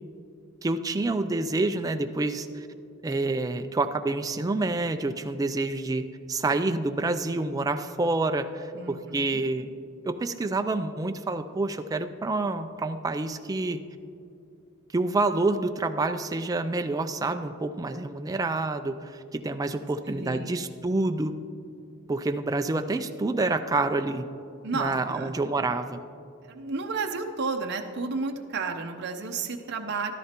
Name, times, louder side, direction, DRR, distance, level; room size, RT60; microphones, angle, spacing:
voice 1, 0.6-2.7 3.0-9.7 10.0-13.8 14.9-21.4 22.1-24.2 24.7-26.0, right 2 dB, 15° right, 8 dB, 0.3 m, -28 dB
voice 2, 8.7-9.4 20.1-20.6 24.6-25.3 26.4-30.1, right 4 dB, 50° right, 4 dB, 0.7 m, -32 dB
14.0 x 12.5 x 2.9 m, 2.6 s
head